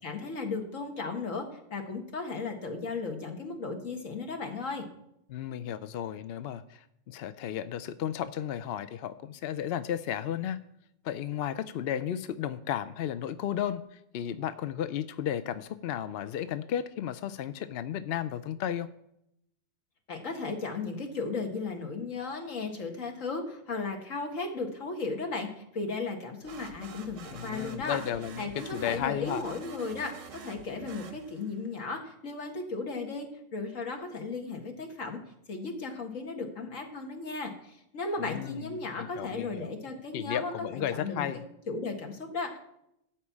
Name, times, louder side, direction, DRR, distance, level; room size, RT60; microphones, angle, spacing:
voice 1, 0.0-1.5 1.7-4.9 20.1-28.0 28.4-33.3 33.5-35.2 35.5-41.3 41.7-42.6, left 3 dB, 80° left, 3 dB, 2.0 m, -35 dB
voice 2, 5.3-10.6 11.0-18.9 27.3-29.4 38.2-39.7 40.1-41.4, left 10 dB, 60° left, 12 dB, 0.7 m, -34 dB
sound 1, 26.4-31.7, right 6 dB, 75° right, 1.4 m, -47 dB
13.0 x 4.4 x 8.3 m, 0.78 s
omnidirectional pair, 1.3 m